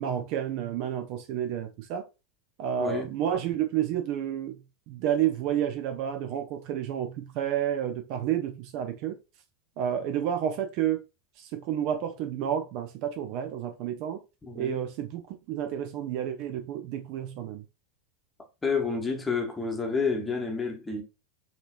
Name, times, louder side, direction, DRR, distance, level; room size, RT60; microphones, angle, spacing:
voice 1, 0.0-2.1 2.6-9.2 9.8-11.0 11.4-14.2 14.5-15.2 15.5-17.6, right 10 dB, 50° right, 0.6 m, -30 dB
voice 2, 2.8-3.1 14.4-14.8 18.6-21.0, left 4 dB, 15° left, 1.0 m, -29 dB
4.2 x 2.9 x 2.5 m
figure-of-eight pair, 85°, 0 cm